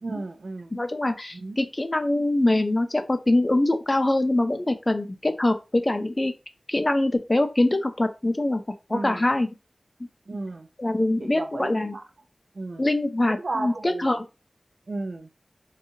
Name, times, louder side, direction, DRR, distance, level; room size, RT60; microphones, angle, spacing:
voice 1, 0.0-0.7 1.3-1.6 8.9-9.3 10.3-10.7 11.2-12.0 12.5-12.9 13.3-14.2 14.9-15.3, right 2 dB, 70° right, 0.4 m, -34 dB
voice 2, 0.7-6.3 6.7-8.6 8.9-9.5 10.8-12.0 12.8-14.3, left 1 dB, 35° left, 0.5 m, -23 dB
2.7 x 2.3 x 2.6 m
wide cardioid pair, 45°, 0 cm